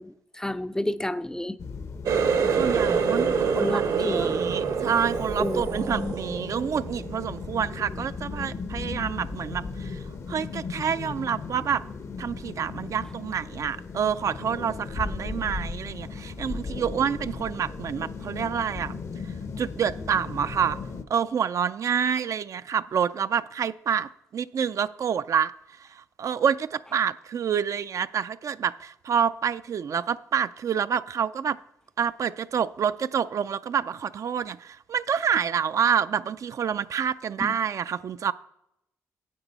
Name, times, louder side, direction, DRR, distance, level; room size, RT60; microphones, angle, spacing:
voice 1, 0.0-1.6 3.6-4.4 5.4-6.1 37.4-37.5, left 1 dB, 10° left, 0.4 m, -30 dB
sound 1, 1.6-21.0, left 4 dB, 50° left, 0.7 m, -37 dB
Water tap faucet, 2.1-7.5 7.9-8.4 8.9-9.1 9.9-10.0, right 6 dB, 75° right, 1.1 m, -26 dB
voice 2, 2.5-11.8 12.2-18.9 19.2-20.8 21.1-31.6 32.0-38.3, right 7 dB, 55° right, 0.3 m, -28 dB
9.9 x 7.9 x 4.1 m
supercardioid pair, 55°, 6 cm